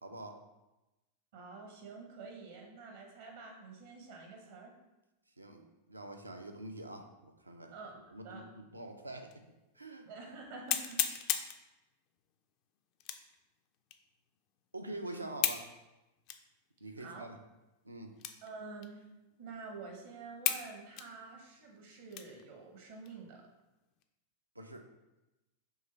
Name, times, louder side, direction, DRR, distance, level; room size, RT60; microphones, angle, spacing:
voice 1, 0.0-0.4 5.4-7.7 8.1-9.4 9.8-10.1 14.7-15.7 16.8-17.4 17.8-18.1 24.6-24.9, right 1 dB, 85° right, 4 dB, 0.4 m, -45 dB
voice 2, 1.3-4.7 7.7-8.5 10.1-11.0 17.0-17.3 18.4-19.1 19.4-23.5, right 4 dB, 60° right, 1 dB, 0.8 m, -48 dB
sound 1, 9.3-9.4 9.9-10.0 10.7-11.6 13.0-13.4 13.9-14.0 15.4-15.7 16.3-16.4 17.1-17.2 18.2-18.5 18.8-18.9 19.6-19.7 20.4-20.7 21.0-22.4 22.9-23.1 23.6-24.0, left 10 dB, 40° left, 0.3 m, -34 dB
3.8 x 3.1 x 4.0 m, 1.0 s
figure-of-eight pair, 90°, 0 cm